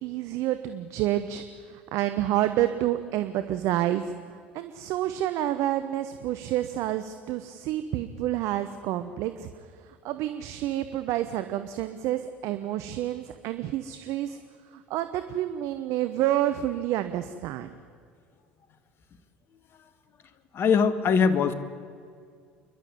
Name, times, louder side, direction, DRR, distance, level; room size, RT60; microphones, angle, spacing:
voice 1, 0.0-4.1 4.5-9.5 9.8-14.4 14.7-17.8, right 13 dB, 60° right, 10 dB, 1.0 m, -29 dB
voice 2, 20.5-21.5, left 6 dB, 45° left, 12 dB, 1.8 m, -21 dB
28.5 x 11.5 x 9.9 m, 2.2 s
hypercardioid pair, 70°, 6 cm